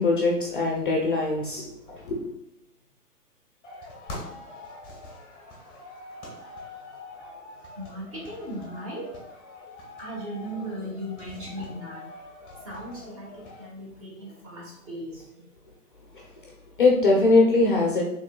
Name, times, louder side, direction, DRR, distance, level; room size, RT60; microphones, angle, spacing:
voice 1, 0.0-2.2 16.1-16.5 16.8-18.0, left 3 dB, 35° left, -1 dB, 0.6 m, -22 dB
sound 1, 3.6-13.7, left 2 dB, 10° left, 1.0 m, -44 dB
voice 2, 7.8-9.1 10.0-12.0 12.6-15.4, equal, 25° right, -3 dB, 1.3 m, -37 dB
6.2 x 3.1 x 2.2 m, 0.83 s
figure-of-eight pair, 135°, 48 cm